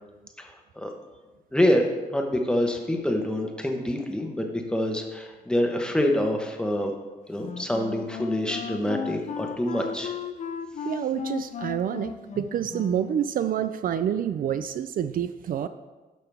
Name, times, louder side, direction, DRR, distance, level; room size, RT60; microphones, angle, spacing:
voice 1, 0.4-0.9 1.5-1.8 2.1-6.9 7.3-10.1, left 1 dB, 5° left, 2 dB, 1.0 m, -26 dB
Wind instrument woodwind instrument, 7.4-13.2, left 7 dB, 50° left, 0.5 m, -35 dB
voice 2, 10.8-15.7, right 9 dB, 60° right, 11 dB, 0.4 m, -28 dB
12.5 x 5.7 x 3.5 m, 1.2 s
cardioid pair, 130°, 16 cm